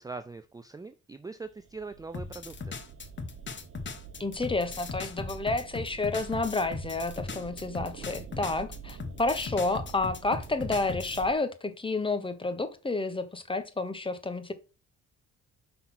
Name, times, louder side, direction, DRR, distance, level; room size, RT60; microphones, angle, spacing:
voice 1, 0.0-2.7, right 4 dB, 10° right, 0.4 m, -42 dB
sound 1, 1.4-11.4, right 7 dB, 45° right, 1.2 m, -46 dB
sound 2, 2.1-11.3, left 4 dB, 40° left, 1.2 m, -39 dB
voice 2, 4.2-14.5, left 3 dB, 15° left, 1.1 m, -30 dB
5.5 x 4.0 x 5.9 m
cardioid pair, 90°, 30 cm